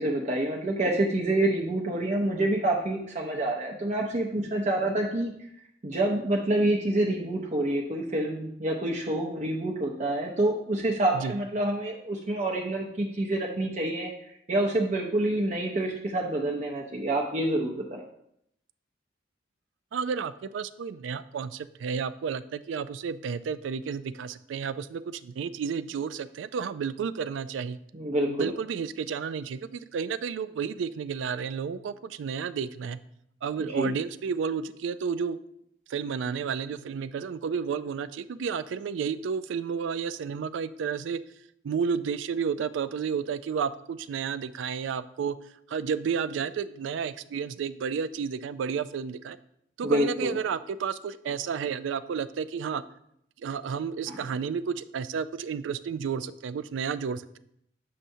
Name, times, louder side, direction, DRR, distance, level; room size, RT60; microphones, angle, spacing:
voice 1, 0.0-5.3 5.8-14.1 14.5-18.0 27.9-28.5 33.6-33.9 49.8-50.3 54.1-54.2, right 1 dB, 40° right, 0 dB, 0.6 m, -27 dB
voice 2, 19.9-27.8 28.2-33.0 33.4-35.4 35.9-41.2 41.6-45.4 45.7-49.4 49.8-52.8 53.4-57.4, right 6 dB, 90° right, 15 dB, 0.3 m, -31 dB
7.5 x 5.5 x 2.7 m, 0.74 s
head